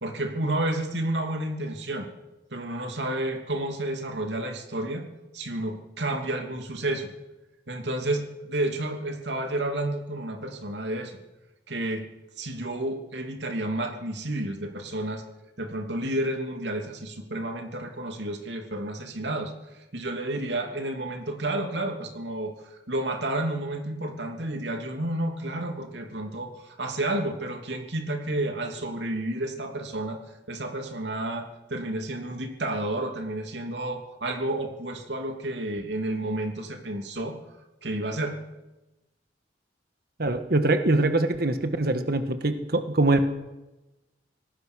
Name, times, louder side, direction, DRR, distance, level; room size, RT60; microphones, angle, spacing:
voice 1, 0.0-2.1 2.5-5.1 5.3-7.1 7.7-11.2 11.7-12.0 12.4-15.2 15.6-19.5 19.9-37.4 37.8-38.4, right 1 dB, 80° right, 4 dB, 2.9 m, -31 dB
voice 2, 40.2-43.2, right 2 dB, 60° right, 8 dB, 1.5 m, -23 dB
25.5 x 18.5 x 6.4 m, 1.0 s
head